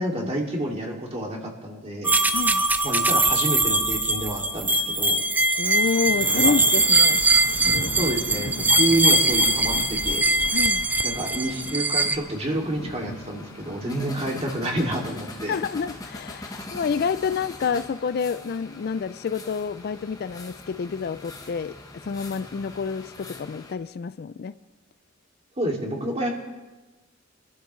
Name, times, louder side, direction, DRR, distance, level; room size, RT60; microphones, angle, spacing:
voice 1, 0.0-2.1 2.8-5.2 6.4-6.6 8.0-10.2 11.0-15.6 25.6-26.3, right 1 dB, 30° right, -1 dB, 2.5 m, -28 dB
sound 1, 2.0-12.2, right 2 dB, 10° right, 0.5 m, -21 dB
voice 2, 2.3-2.7 5.6-7.2 10.5-10.9 15.5-21.7 22.0-24.5, left 6 dB, 50° left, 14 dB, 0.4 m, -28 dB
Thunder, 4.4-5.2 5.5-15.1 16.6-17.4, left 1 dB, 80° left, 1.5 m, -39 dB
sound 2, 5.6-23.7, left 2 dB, 20° left, 1.3 m, -43 dB
25.0 x 12.0 x 3.2 m, 1.2 s
head